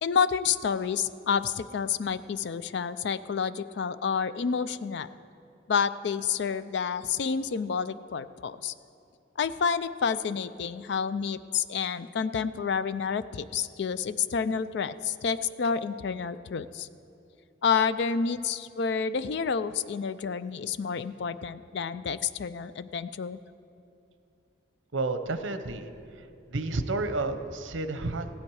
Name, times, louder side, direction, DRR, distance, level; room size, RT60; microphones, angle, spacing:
voice 1, 0.0-5.1 5.7-8.7 9.4-16.9 17.6-23.4, left 6 dB, 60° left, 14 dB, 0.4 m, -29 dB
voice 2, 24.9-25.9 26.2-28.3, right 2 dB, 80° right, 9 dB, 0.8 m, -31 dB
15.5 x 10.5 x 4.8 m, 2.6 s
head